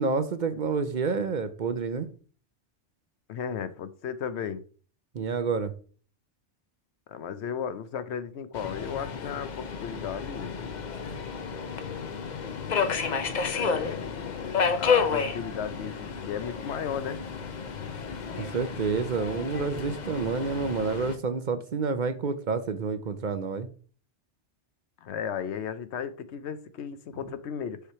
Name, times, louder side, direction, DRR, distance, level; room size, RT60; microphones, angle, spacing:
voice 1, 0.0-2.1 5.1-5.7 18.4-23.7, right 4 dB, 50° right, 0.6 m, -29 dB
voice 2, 3.3-4.6 7.1-10.6 13.5-14.1 14.8-17.2 25.0-27.8, left 7 dB, 70° left, 0.9 m, -35 dB
Subway metro underground, 8.5-21.2, left 5 dB, 45° left, 0.7 m, -31 dB
6.7 x 3.2 x 5.5 m
omnidirectional pair, 1.2 m